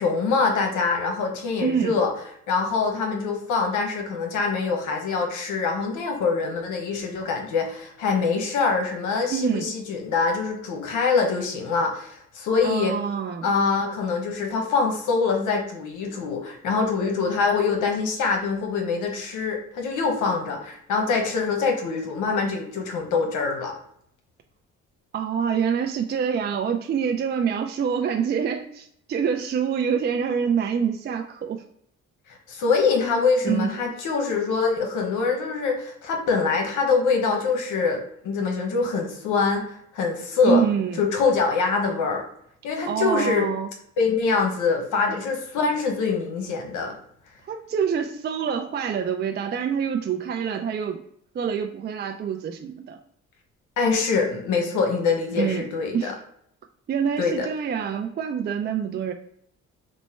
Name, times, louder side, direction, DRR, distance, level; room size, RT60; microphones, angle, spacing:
voice 1, 0.0-2.1 2.5-12.9 13.4-23.7 32.5-40.6 41.0-42.2 42.6-43.5 44.0-47.0 53.8-56.1 57.2-57.5, left 4 dB, 80° left, 2 dB, 0.9 m, -24 dB
voice 2, 1.6-1.9 9.3-9.7 12.6-13.5 25.1-31.6 33.4-33.7 40.4-41.0 42.8-43.7 47.5-51.0 51.3-53.0 55.3-55.7 55.9-56.1 56.9-59.1, right 7 dB, 35° right, 5 dB, 0.4 m, -26 dB
3.0 x 2.2 x 4.2 m, 0.69 s
cardioid pair, 90°, 30 cm